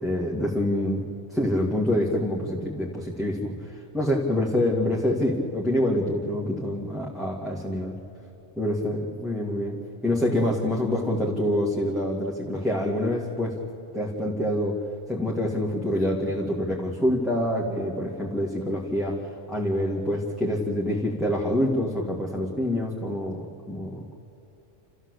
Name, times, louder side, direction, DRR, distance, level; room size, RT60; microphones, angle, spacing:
voice 1, 0.0-1.0 1.3-7.9 8.6-13.6 13.9-14.7 15.1-24.2, left 1 dB, ahead, -5 dB, 2.4 m, -26 dB
29.0 x 14.5 x 8.2 m, 2.8 s
omnidirectional pair, 1.3 m